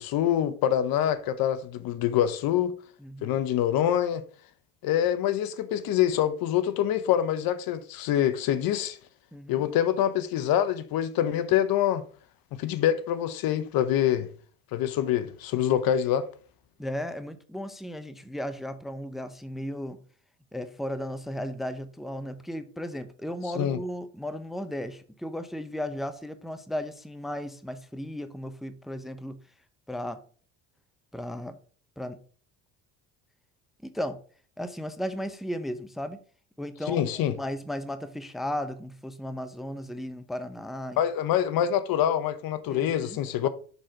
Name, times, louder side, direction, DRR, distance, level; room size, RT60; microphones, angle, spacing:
voice 1, 0.0-2.7 3.2-4.2 4.8-9.0 9.5-12.0 12.5-14.3 14.7-16.3 23.6-23.8 36.9-37.3 41.0-43.5, left 10 dB, 65° left, 0.8 m, -25 dB
voice 2, 3.0-3.4 9.3-9.6 16.8-20.0 20.5-29.4 29.9-30.2 31.1-31.6 32.0-32.2 33.8-34.2 34.6-36.2 36.6-41.0 42.7-43.5, equal, ahead, 0.6 m, -35 dB
6.4 x 4.0 x 4.9 m
supercardioid pair, 75°, 39 cm